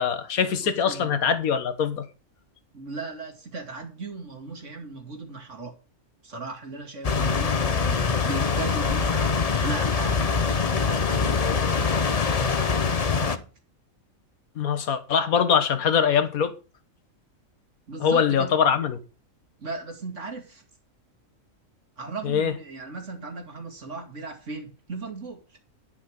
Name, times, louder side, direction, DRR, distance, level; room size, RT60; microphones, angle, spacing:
voice 1, 0.0-2.0 14.6-16.5 18.0-19.0 22.2-22.5, left 7 dB, 80° left, 1.6 m, -23 dB
voice 2, 2.7-5.8 6.2-11.9 13.1-13.4 17.9-18.5 19.6-20.6 22.0-25.6, right 3 dB, 55° right, 2.6 m, -37 dB
sound 1, 7.0-13.4, left 5 dB, 35° left, 0.7 m, -24 dB
11.5 x 5.7 x 6.4 m
omnidirectional pair, 1.5 m